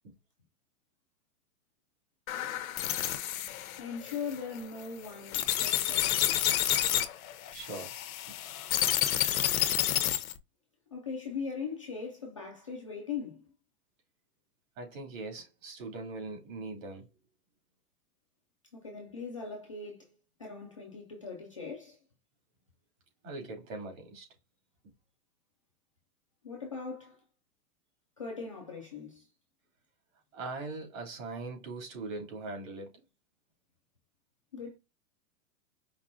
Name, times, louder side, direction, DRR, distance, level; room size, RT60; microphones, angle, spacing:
sound 1, 2.3-10.4, left 12 dB, 65° left, 0.8 m, -30 dB
voice 1, 3.8-6.5 10.9-13.4 18.7-22.0 26.4-27.2 28.2-29.3 34.5-34.8, left 5 dB, 25° left, 0.4 m, -40 dB
voice 2, 7.5-8.0 8.3-8.4 14.8-17.1 23.2-24.2 30.3-33.0, right 3 dB, 60° right, 2.7 m, -41 dB
5.3 x 3.0 x 2.6 m
supercardioid pair, 165°, 46 cm